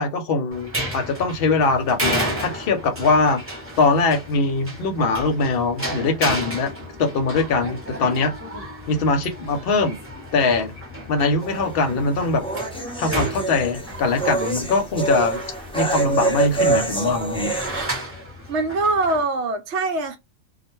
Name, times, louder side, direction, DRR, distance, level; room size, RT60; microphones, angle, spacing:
voice 1, 0.0-3.4 3.8-6.7 7.0-8.3 8.9-10.0 10.3-10.7 11.1-12.4 13.0-15.4 15.7-17.6, left 3 dB, 55° left, 0.8 m, -22 dB
sound 1, 0.5-19.2, right 1 dB, 15° right, 0.7 m, -32 dB
sound 2, 11.4-17.8, right 3 dB, 10° left, 0.4 m, -26 dB
voice 2, 18.5-20.2, right 3 dB, 70° right, 0.8 m, -23 dB
2.3 x 2.1 x 3.0 m
omnidirectional pair, 1.3 m